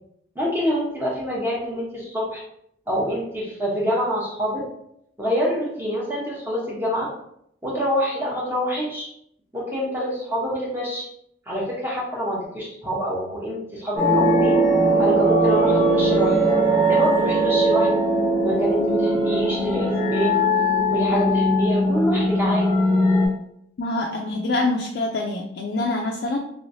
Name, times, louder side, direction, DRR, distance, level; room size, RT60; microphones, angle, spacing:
voice 1, 0.3-2.4 2.9-4.7 5.2-7.1 7.6-9.1 9.5-11.1 11.5-14.6 15.0-16.4 16.9-18.0 18.4-20.4 20.9-22.8, equal, 10° right, -4 dB, 0.9 m, -26 dB
sound 1, 14.0-23.3, right 1 dB, 10° left, 1.1 m, -19 dB
voice 2, 23.8-26.4, left 2 dB, 55° left, 0 dB, 0.4 m, -25 dB
3.1 x 3.1 x 2.6 m, 0.72 s
head